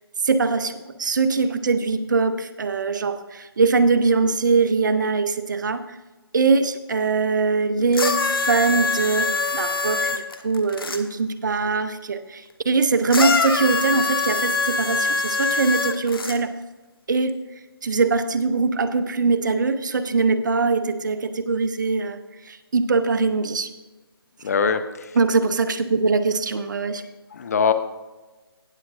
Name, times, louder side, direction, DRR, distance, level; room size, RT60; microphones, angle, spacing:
voice 1, 0.2-6.0 6.3-16.5 17.1-17.4 17.8-22.2 22.4-23.7 25.2-27.0, right 4 dB, 50° right, 12 dB, 0.7 m, -22 dB
sound 1, 7.9-11.0 13.1-16.4 17.3-17.4, left 4 dB, 65° left, 1.2 m, -24 dB
voice 2, 24.4-25.1 27.3-27.7, left 6 dB, 40° left, 11 dB, 0.7 m, -22 dB
18.0 x 7.2 x 2.5 m, 1.2 s
figure-of-eight pair, 155°, 13 cm